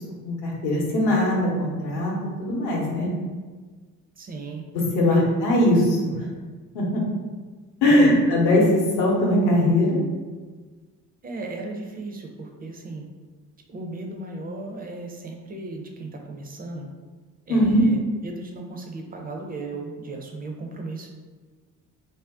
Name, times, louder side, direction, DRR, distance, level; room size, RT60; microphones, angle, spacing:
voice 1, 0.2-2.1 2.4-3.1 4.7-6.1 6.7-7.0 7.8-10.0 17.5-17.8, left 1 dB, 55° left, -3 dB, 0.9 m, -20 dB
voice 2, 4.2-4.6 5.1-5.3 7.9-8.2 11.2-13.0 13.7-16.9 17.5-21.2, right 3 dB, 20° right, 2 dB, 0.4 m, -35 dB
2.5 x 2.1 x 3.4 m, 1.4 s
figure-of-eight pair, 40°, 46 cm